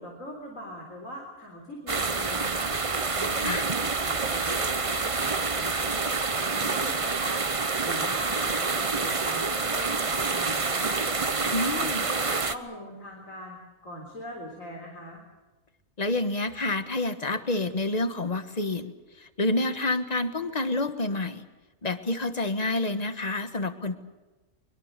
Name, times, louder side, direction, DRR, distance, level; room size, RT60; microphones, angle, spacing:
voice 1, 0.0-2.7 3.2-10.9 11.3-15.2, left 1 dB, 90° left, 0 dB, 4.3 m, -41 dB
sound 1, 1.9-12.5, right 4 dB, 30° right, 0.9 m, -27 dB
voice 2, 11.5-12.0 16.0-18.9 19.2-21.5 21.8-24.0, left 2 dB, 30° left, 9 dB, 1.5 m, -28 dB
24.0 x 22.5 x 6.8 m, 1.2 s
omnidirectional pair, 1.3 m